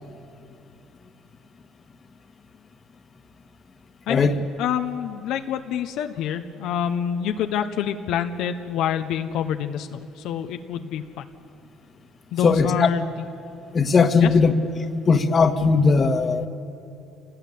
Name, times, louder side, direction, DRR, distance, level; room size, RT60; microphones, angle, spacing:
voice 1, 4.1-11.2 12.3-13.2 14.2-14.3, left 9 dB, 75° left, 6 dB, 1.1 m, -27 dB
voice 2, 12.4-12.9 13.7-14.5 15.1-16.5, left 4 dB, 35° left, 7 dB, 1.7 m, -18 dB
28.0 x 19.0 x 8.7 m, 2.6 s
supercardioid pair, 90°, 0 cm